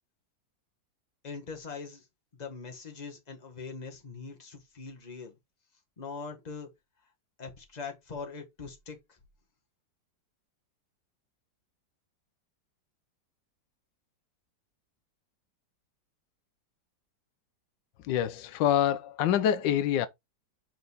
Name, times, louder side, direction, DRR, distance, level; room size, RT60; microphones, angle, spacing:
voice 1, 1.2-2.1 2.4-5.3 6.0-6.7 7.4-9.2, left 5 dB, 25° left, 1.5 m, -42 dB
voice 2, 18.0-20.1, left 10 dB, 85° left, 1.3 m, -26 dB
5.2 x 4.5 x 4.0 m
omnidirectional pair, 1.9 m